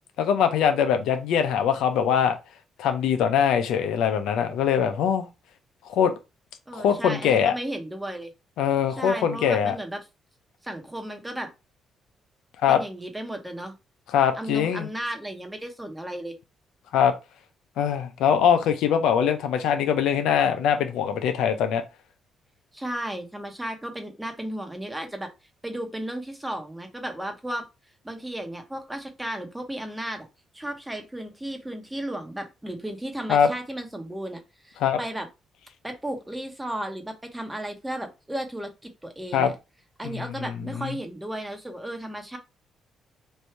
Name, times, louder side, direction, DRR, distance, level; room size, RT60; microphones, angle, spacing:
voice 1, 0.2-2.4 2.8-5.3 5.9-6.1 6.7-7.5 8.6-9.8 12.6-12.8 14.1-14.9 16.9-17.1 17.8-21.8 33.3-33.5 34.8-35.0 39.3-39.5 40.0-40.9, left 8 dB, 85° left, 0.6 m, -22 dB
voice 2, 6.7-8.3 8.9-10.0 10.6-11.5 12.7-13.7 14.3-16.3 22.7-25.3 25.6-27.7 28.0-30.3 30.5-35.3 35.8-39.5 40.0-42.4, right 1 dB, 10° right, 1.0 m, -34 dB
3.3 x 2.7 x 4.4 m
cardioid pair, 90°, 0 cm